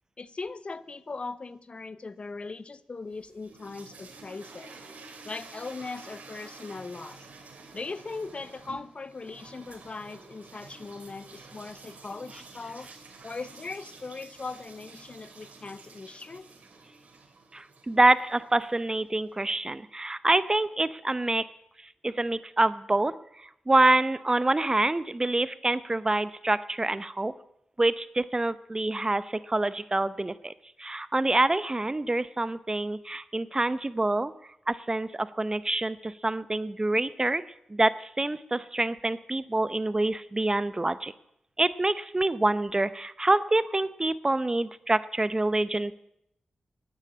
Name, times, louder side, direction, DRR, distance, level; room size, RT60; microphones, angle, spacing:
voice 1, 0.2-4.8 5.2-7.3 7.7-12.9 13.2-16.5, left 3 dB, 45° left, 17 dB, 0.6 m, -39 dB
sound 1, 3.0-19.1, right 4 dB, 75° right, 2.5 m, -50 dB
voice 2, 17.5-21.4 22.0-27.3 27.8-30.5 30.8-34.3 34.7-37.4 37.7-41.1 41.6-45.9, right 2 dB, 25° right, 16 dB, 0.7 m, -26 dB
11.5 x 9.8 x 8.5 m, 0.77 s
cardioid pair, 55°, 3 cm